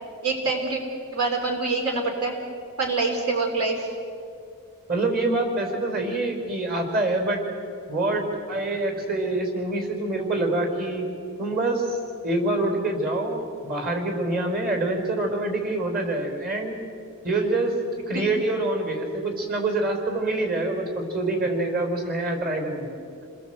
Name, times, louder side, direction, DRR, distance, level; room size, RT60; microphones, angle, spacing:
voice 1, 0.2-0.8 1.1-2.3 2.8-3.9 18.1-18.2, right 3 dB, 80° right, 2 dB, 3.5 m, -25 dB
voice 2, 4.9-7.4 7.9-11.0 11.4-12.0 12.2-16.8 17.2-17.7 18.1-23.0, right 2 dB, 45° right, 4 dB, 4.7 m, -26 dB
29.5 x 21.0 x 8.0 m, 2.4 s
head